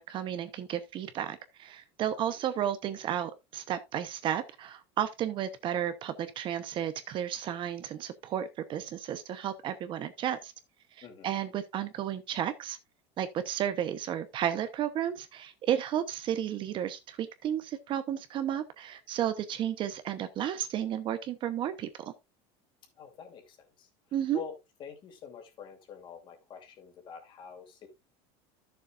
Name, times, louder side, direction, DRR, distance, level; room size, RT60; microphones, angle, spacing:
voice 1, 0.0-10.5 11.0-12.8 13.2-22.1 24.1-24.4, right 10 dB, 35° right, 0.8 m, -33 dB
voice 2, 23.0-23.9 24.3-27.9, left 7 dB, 35° left, 2.7 m, -46 dB
13.0 x 6.9 x 2.4 m
cardioid pair, 155°, 15 cm